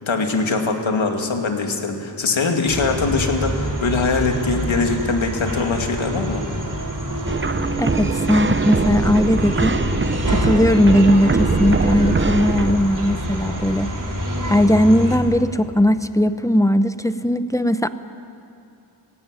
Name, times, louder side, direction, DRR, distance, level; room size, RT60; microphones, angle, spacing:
voice 1, 0.0-6.4, left 4 dB, 90° left, 3 dB, 2.4 m, -22 dB
sound 1, 2.7-15.2, equal, 45° right, 4.4 m, -26 dB
sound 2, 7.3-12.7, right 4 dB, 25° right, 0.8 m, -22 dB
voice 2, 7.8-9.9 10.3-13.9 14.5-17.9, left 1 dB, 5° left, 11 dB, 0.8 m, -18 dB
20.5 x 16.5 x 9.9 m, 2.7 s
wide cardioid pair, 80°, 45 cm